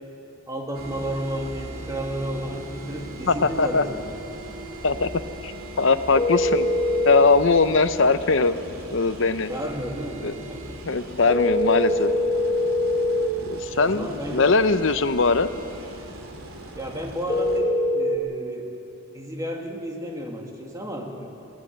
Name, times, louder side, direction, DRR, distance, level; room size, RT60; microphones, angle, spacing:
voice 1, 0.5-4.2 9.5-10.8 13.8-14.5 16.7-18.7 19.1-21.3, equal, 15° right, 1 dB, 2.2 m, -32 dB
sound 1, 0.7-17.6, right 1 dB, 90° right, 2.9 m, -39 dB
voice 2, 3.3-3.9 4.8-5.1 5.4-6.7 7.0-8.5 8.9-9.5 10.2-10.3 10.8-12.1 13.4-15.5, left 4 dB, 60° left, 11 dB, 0.8 m, -21 dB
sound 2, 6.1-7.3 11.3-13.3 17.3-18.2, left 1 dB, 20° left, 1.5 m, -23 dB
20.5 x 18.0 x 7.5 m, 2.7 s
head